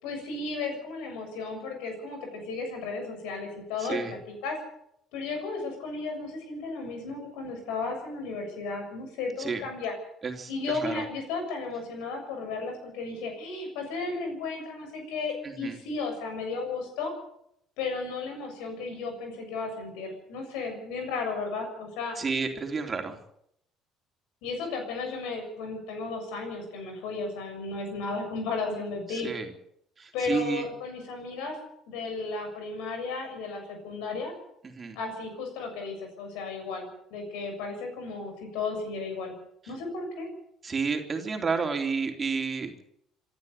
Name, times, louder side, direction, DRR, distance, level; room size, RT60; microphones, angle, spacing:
voice 1, 0.0-4.6 5.1-9.9 10.5-17.1 17.8-22.2 24.4-29.3 30.1-31.6 31.9-34.3 35.0-39.3 39.7-40.3, left 3 dB, 70° left, 5 dB, 7.0 m, -34 dB
voice 2, 3.8-4.1 9.4-9.6 10.2-11.0 15.4-15.8 22.2-23.2 29.1-29.5 30.0-30.7 34.6-35.0 40.6-42.8, right 5 dB, 30° right, 4 dB, 3.6 m, -31 dB
27.0 x 11.5 x 8.4 m, 0.74 s
hypercardioid pair, 55°, 0 cm